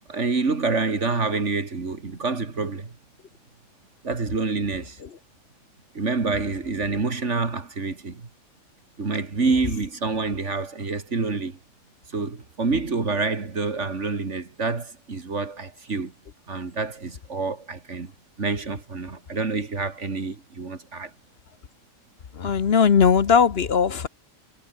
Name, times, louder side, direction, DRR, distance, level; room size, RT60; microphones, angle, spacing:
voice 1, 0.1-2.9 4.0-5.0 5.9-8.3 9.0-11.6 12.1-16.1 16.5-18.1 18.4-21.1, right 4 dB, 60° right, 2.7 m, -27 dB
voice 2, 22.4-24.1, left 6 dB, 50° left, 1.2 m, -18 dB
omnidirectional pair, 1.4 m